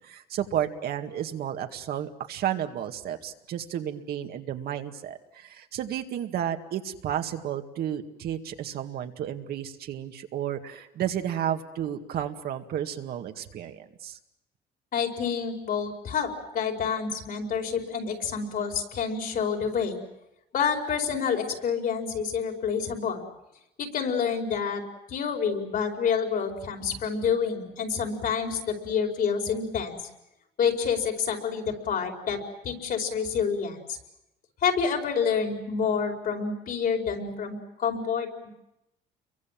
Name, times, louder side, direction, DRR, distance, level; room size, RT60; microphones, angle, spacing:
voice 1, 0.0-14.2, right 10 dB, 65° right, 6 dB, 2.1 m, -32 dB
voice 2, 14.9-20.0 20.5-23.3 23.8-30.1 30.6-32.4 32.6-34.0 34.6-38.3, left 6 dB, 55° left, 3 dB, 5.0 m, -28 dB
29.5 x 23.5 x 7.6 m, 0.88 s
cardioid pair, 110°, 17 cm